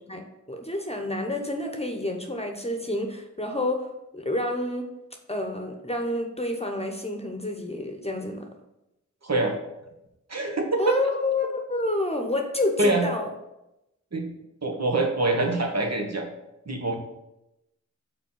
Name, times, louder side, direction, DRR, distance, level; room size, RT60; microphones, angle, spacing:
voice 1, 0.1-4.9 5.3-8.5 10.8-13.3, left 2 dB, 20° left, 3 dB, 0.9 m, -29 dB
voice 2, 9.2-9.5 10.3-11.0 12.8-13.0 14.1-14.3 14.6-16.2 16.7-17.0, right 2 dB, 55° right, 2 dB, 1.3 m, -24 dB
5.2 x 4.2 x 5.5 m, 0.91 s
cardioid pair, 40°, 31 cm